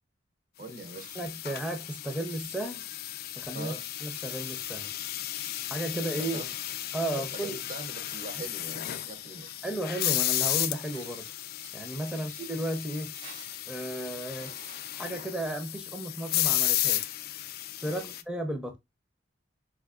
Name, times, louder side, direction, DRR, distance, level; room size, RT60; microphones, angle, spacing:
voice 1, 0.6-1.2 3.5-3.9 5.9-6.5 7.0-9.5 12.1-12.5 17.8-18.1, right 3 dB, 50° right, 0.6 m, -43 dB
sound 1, 0.8-18.2, left 13 dB, 55° left, 0.3 m, -34 dB
voice 2, 1.2-2.8 3.4-3.7 4.0-4.9 5.7-6.4 6.9-7.6 9.6-11.3 11.7-13.1 13.7-14.5 14.9-17.2 17.8-18.8, right 1 dB, 5° right, 0.5 m, -34 dB
sound 2, 2.2-15.8, right 3 dB, 85° right, 1.7 m, -56 dB
3.6 x 2.6 x 2.3 m
head